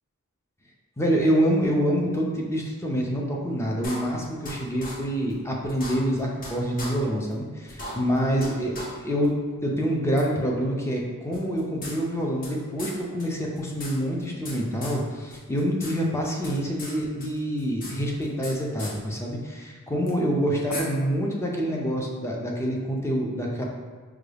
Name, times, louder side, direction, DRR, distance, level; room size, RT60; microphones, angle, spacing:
voice 1, 1.0-9.3 9.6-23.6, equal, 10° left, -1 dB, 0.5 m, -26 dB
sound 1, 3.8-4.5 4.8-4.9 5.3-5.4 5.7-6.5 6.8-6.9 7.3-7.4 7.7-8.5 8.7-8.9 9.2-9.3 10.2-10.3 11.3-12.5 12.8-12.9 13.2-13.3 13.5-14.6 14.8-15.0 15.3-15.9 16.2-16.9 17.2-18.5 18.8-18.9 20.1-20.2 20.7-20.8, left 2 dB, 40° left, 0.8 m, -37 dB
4.8 x 2.3 x 3.3 m, 1.4 s
head